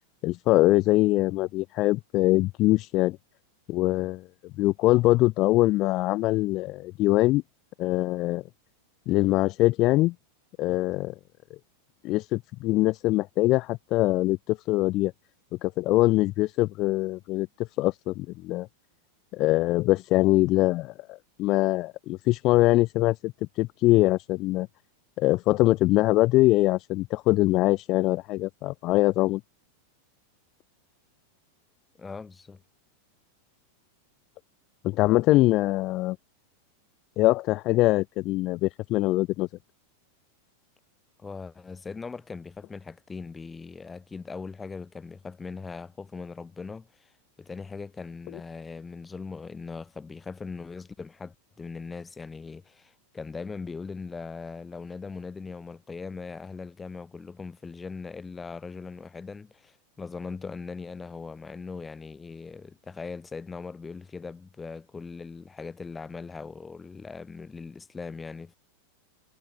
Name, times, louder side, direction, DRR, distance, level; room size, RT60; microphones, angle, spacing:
voice 1, 0.2-3.2 3.7-7.4 7.8-8.4 9.1-10.1 10.6-11.1 12.0-15.1 15.6-17.5 17.8-18.7 19.3-23.3 23.6-24.7 25.2-29.4 34.8-36.2 37.2-39.5, left 18 dB, 40° left, 0.7 m, -23 dB
voice 2, 32.0-32.6 41.2-47.1 47.4-68.6, left 4 dB, 15° left, 6.8 m, -40 dB
figure-of-eight pair, 90°, 0 cm